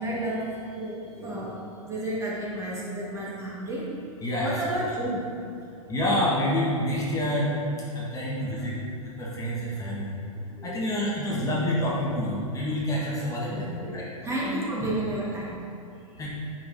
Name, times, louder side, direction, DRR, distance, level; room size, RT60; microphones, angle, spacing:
voice 1, 0.0-4.1 4.4-5.6 8.1-8.7 9.5-10.0 10.3-10.8 13.3-15.6, right 1 dB, 15° right, -6 dB, 1.6 m, -33 dB
voice 2, 4.2-4.6 5.9-7.5 7.9-8.8 9.1-10.2 10.6-13.5 13.9-14.0 14.4-14.9 16.2-16.3, left 1 dB, 20° left, -6 dB, 1.5 m, -27 dB
9.5 x 5.7 x 2.7 m, 2.5 s
hypercardioid pair, 110°, 18 cm